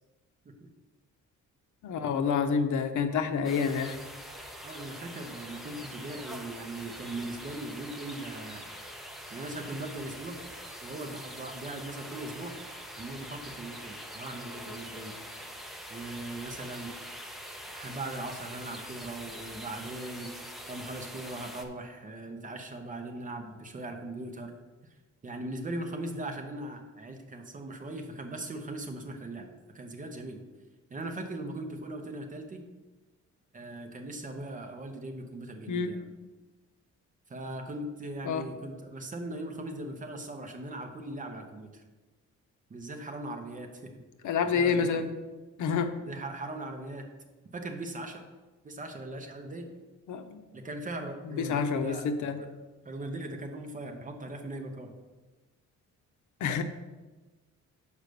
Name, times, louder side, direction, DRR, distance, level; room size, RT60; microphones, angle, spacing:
voice 1, 1.8-4.0 35.7-35.9 38.2-38.5 44.2-45.1 45.6-45.9 50.1-50.4 51.2-52.4 56.4-56.6, left 6 dB, 75° left, 7 dB, 0.7 m, -28 dB
sound 1, 3.4-21.6, equal, ahead, 0.6 m, -44 dB
voice 2, 4.6-8.7 9.3-10.3 10.8-12.5 13.0-15.1 15.9-16.9 17.7-20.4 20.7-24.5 25.2-29.5 29.7-30.4 30.9-32.6 33.5-36.1 37.3-41.8 42.7-43.9 44.5-45.1 46.0-47.1 47.5-48.2 48.6-49.7 50.5-52.0 52.3-52.5 52.8-54.9, right 2 dB, 25° right, 4 dB, 0.8 m, -39 dB
6.4 x 4.9 x 6.8 m, 1.2 s
cardioid pair, 170°, 30 cm